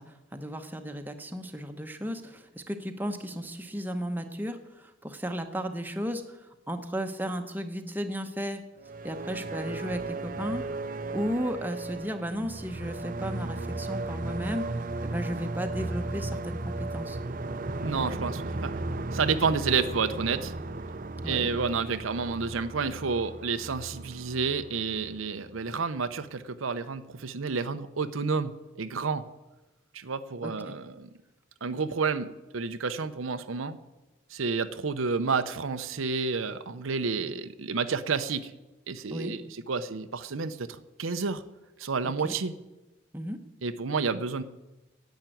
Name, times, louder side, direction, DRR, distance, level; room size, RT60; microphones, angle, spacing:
voice 1, 0.0-8.6 9.0-10.6 11.1-17.2 21.2-21.5 30.4-30.7 39.1-39.3 42.0-42.4 43.1-43.4, equal, 10° right, 5 dB, 0.9 m, -34 dB
sound 1, 8.8-25.7, right 2 dB, 45° right, 0.6 m, -35 dB
voice 2, 17.8-18.7 19.1-20.5 21.2-28.5 28.8-29.2 29.9-31.1 31.6-33.8 34.3-38.5 38.9-41.4 41.8-42.5 43.6-44.4, right 5 dB, 85° right, 10 dB, 0.7 m, -30 dB
10.5 x 8.2 x 9.0 m, 1.0 s
head